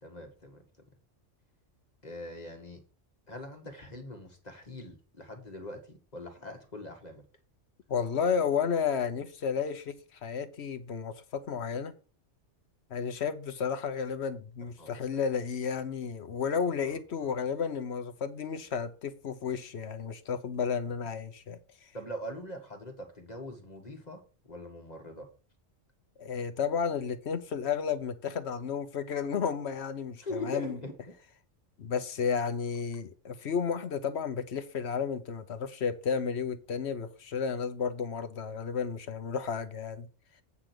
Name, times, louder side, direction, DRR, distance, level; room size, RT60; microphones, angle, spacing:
voice 1, 0.0-0.6 2.0-2.8 3.3-7.2 14.8-15.2 16.8-17.3 21.9-24.2 24.5-25.3 30.2-30.9, left 1 dB, 35° left, 1.9 m, -42 dB
voice 2, 7.9-11.9 12.9-21.6 26.2-30.8 31.8-40.1, left 6 dB, 70° left, 1.2 m, -32 dB
8.6 x 5.0 x 6.1 m
omnidirectional pair, 1.2 m